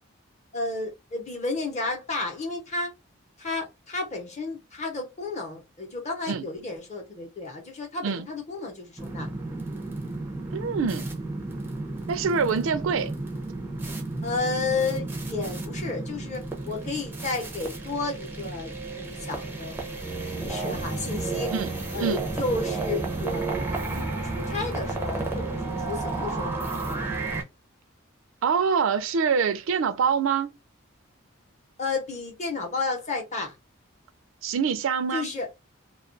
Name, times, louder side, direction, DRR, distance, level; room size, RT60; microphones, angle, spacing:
voice 1, 0.5-2.9 3.4-9.3 14.2-19.9 20.4-21.5 21.9-27.2 31.8-33.6 35.1-35.5, left 3 dB, 35° left, 0.7 m, -32 dB
sound 1, 9.0-27.4, right 3 dB, 10° right, 0.4 m, -32 dB
voice 2, 10.5-11.1 12.1-13.1 21.5-21.7 22.0-22.2 28.4-30.5 34.4-35.3, right 6 dB, 70° right, 0.4 m, -25 dB
2.3 x 2.2 x 2.5 m
head